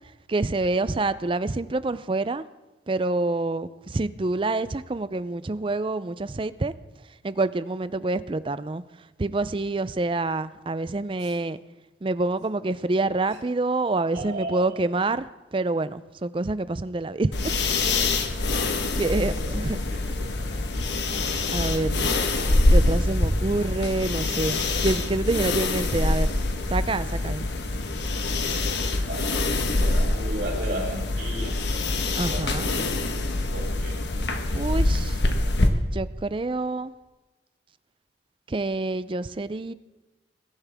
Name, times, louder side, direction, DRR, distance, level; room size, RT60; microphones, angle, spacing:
voice 1, 0.3-2.4 2.9-6.7 7.2-8.8 9.2-11.6 12.0-17.3 19.0-19.8 21.5-22.1 22.7-26.3 26.7-27.5 32.1-32.7 34.5-35.2 35.9-36.9 38.5-39.7, right 2 dB, 30° right, 15 dB, 0.5 m, -27 dB
voice 2, 14.1-14.8 19.0-20.3 29.0-31.6 32.2-33.0 33.3-34.0, right 1 dB, 75° right, -3 dB, 4.7 m, -36 dB
sound 1, 17.3-35.7, left 2 dB, 80° left, 1.3 m, -25 dB
21.5 x 12.0 x 3.5 m, 1.1 s
head